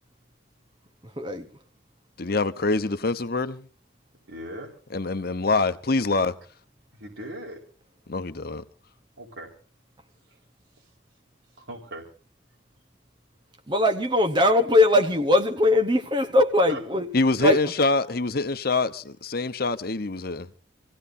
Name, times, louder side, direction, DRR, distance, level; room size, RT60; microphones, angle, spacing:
voice 1, 2.2-3.7 4.9-6.4 8.1-8.6 17.1-20.5, left 3 dB, 55° left, 1.0 m, -25 dB
voice 2, 4.3-4.8 6.9-7.6 9.2-9.5 10.3-10.4 10.7-10.9 11.6-12.0 16.7-16.8 17.4-17.5, right 1 dB, 90° right, 4.6 m, -39 dB
voice 3, 13.7-17.1 17.4-17.6, left 1 dB, 25° right, 1.1 m, -20 dB
27.0 x 16.5 x 2.7 m
head